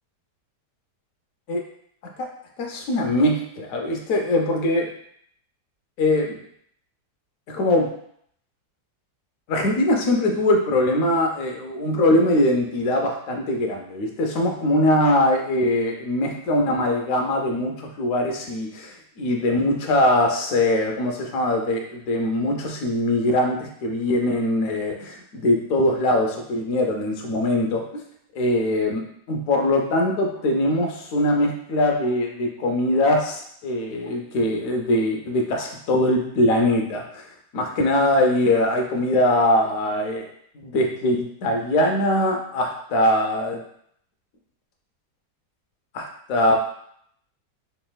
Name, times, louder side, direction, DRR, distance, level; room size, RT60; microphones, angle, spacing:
voice 1, 2.6-4.9 6.0-6.4 7.5-7.9 9.5-27.8 28.3-37.2 37.5-40.3 40.5-43.6 45.9-46.6, left 1 dB, 65° left, 1 dB, 1.0 m, -22 dB
4.0 x 3.4 x 2.3 m, 0.68 s
omnidirectional pair, 1.8 m